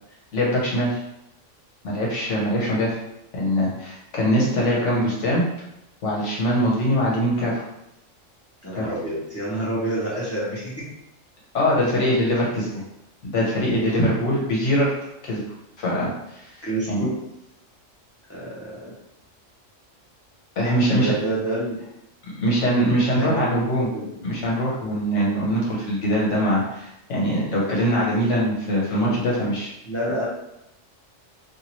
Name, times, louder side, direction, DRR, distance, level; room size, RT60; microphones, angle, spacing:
voice 1, 0.3-1.0 1.8-3.0 3.3-5.4 6.0-7.6 8.8-8.9 11.5-12.7 13.2-14.9 15.2-15.4 15.8-16.5 16.9-17.0 20.6-21.1 22.4-23.9 24.2-29.7, equal, 70° left, -4 dB, 1.2 m, -22 dB
voice 2, 8.6-10.9 16.6-17.2 18.3-18.9 20.9-21.8 23.0-23.7 23.9-24.1 29.9-30.2, right 1 dB, 15° left, -9 dB, 0.8 m, -28 dB
2.7 x 2.6 x 2.9 m, 0.86 s
omnidirectional pair, 1.3 m